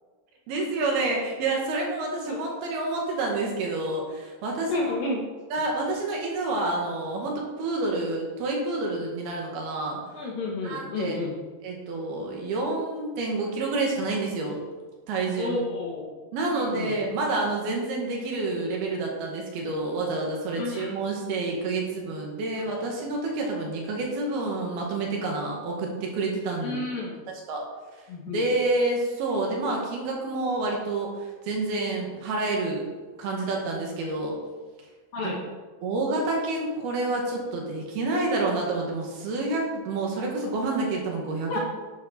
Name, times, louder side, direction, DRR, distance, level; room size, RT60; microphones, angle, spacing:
voice 1, 0.5-4.7 5.5-10.0 10.6-11.2 11.6-14.6 15.1-15.6 16.3-26.8 27.5-27.6 28.3-34.4 35.2-35.3 35.8-41.6, right 2 dB, 65° right, -1 dB, 3.5 m, -28 dB
voice 2, 4.7-5.2 10.1-11.3 15.4-16.0 16.7-16.9 20.5-20.9 22.6-22.7 26.6-27.2 28.1-28.4 35.1-35.4 41.5-41.6, left 3 dB, 60° left, -2 dB, 3.0 m, -31 dB
12.0 x 8.5 x 4.4 m, 1.3 s
omnidirectional pair, 5.1 m